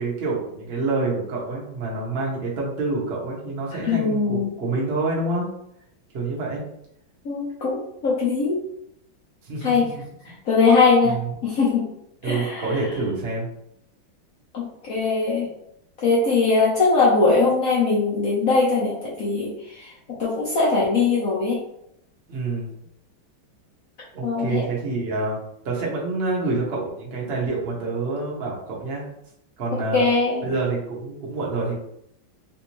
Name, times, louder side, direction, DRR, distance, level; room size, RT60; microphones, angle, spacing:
voice 1, 0.0-5.5 6.1-6.6 9.4-10.0 11.0-11.3 12.2-13.5 22.3-22.7 24.1-25.4 25.6-29.1 29.6-30.0 30.4-31.7, right 3 dB, 50° right, -4 dB, 0.8 m, -27 dB
voice 2, 3.7-4.5 7.2-8.6 9.6-9.9 10.5-11.2 11.4-11.9 12.2-12.7 14.5-15.5 16.0-19.9 20.2-21.6 24.2-24.6 29.9-30.4, left 4 dB, 65° left, -6 dB, 0.9 m, -21 dB
3.4 x 2.6 x 2.9 m, 0.77 s
omnidirectional pair, 2.2 m